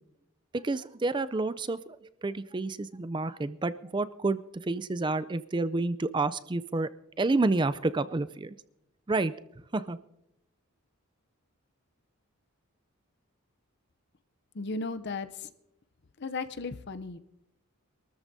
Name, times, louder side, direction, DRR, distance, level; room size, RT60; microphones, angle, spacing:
voice 1, 0.5-6.9 7.2-8.6 9.1-9.3 9.7-10.0, right 3 dB, 20° right, 14 dB, 0.4 m, -29 dB
voice 2, 14.5-15.5 16.2-17.2, left 3 dB, 50° left, 12 dB, 0.6 m, -35 dB
26.0 x 13.5 x 2.7 m, 0.89 s
head